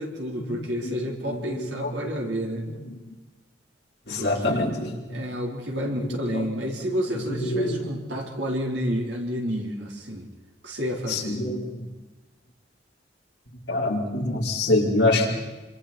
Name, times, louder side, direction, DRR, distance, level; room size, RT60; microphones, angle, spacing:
voice 1, 0.0-2.7 4.2-4.6 5.1-10.3 10.6-11.3, equal, 75° right, -1 dB, 4.4 m, -30 dB
voice 2, 1.3-2.2 2.8-3.0 4.1-5.2 5.9-6.5 6.8-8.0 11.1-11.9 13.7-15.4, left 2 dB, 65° left, -3 dB, 4.6 m, -26 dB
27.0 x 26.5 x 4.5 m, 1.2 s
head